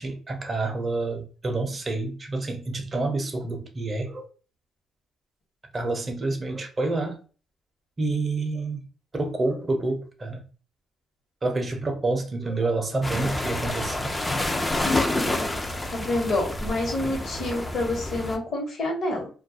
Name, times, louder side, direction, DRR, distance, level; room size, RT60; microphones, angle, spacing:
voice 1, 0.0-4.3 5.7-7.2 8.0-8.9 9.1-10.4 11.4-14.1, right 2 dB, 30° right, 0.6 m, -28 dB
sound 1, 13.0-18.4, left 1 dB, 20° left, 0.4 m, -28 dB
voice 2, 14.8-15.5 15.8-19.3, left 2 dB, 55° left, 1.0 m, -28 dB
2.2 x 2.2 x 2.6 m
cardioid pair, 90°, 0 cm